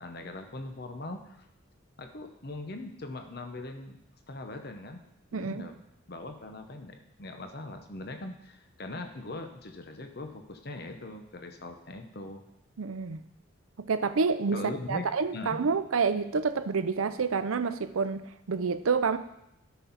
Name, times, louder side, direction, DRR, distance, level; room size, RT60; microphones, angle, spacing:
voice 1, 0.0-1.4 2.0-4.0 4.3-5.0 5.3-5.8 6.1-12.4 14.5-15.6, left 2 dB, 50° left, 5 dB, 0.8 m, -41 dB
voice 2, 5.3-5.7 12.8-13.2 13.8-14.6 14.9-19.2, right 5 dB, 85° right, 11 dB, 0.6 m, -28 dB
12.5 x 6.1 x 4.1 m, 0.81 s
head